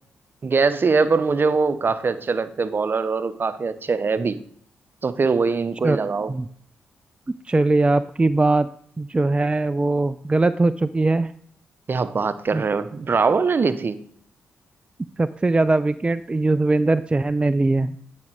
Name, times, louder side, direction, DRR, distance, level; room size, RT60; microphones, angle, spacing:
voice 1, 0.4-4.4 5.0-6.3 11.9-14.0, right 4 dB, 45° right, 13 dB, 0.7 m, -22 dB
voice 2, 7.5-8.7 9.0-11.3 12.5-12.6 15.2-18.0, right 2 dB, 20° right, 13 dB, 0.4 m, -20 dB
9.7 x 5.2 x 4.7 m, 0.64 s
supercardioid pair, 45°, 5 cm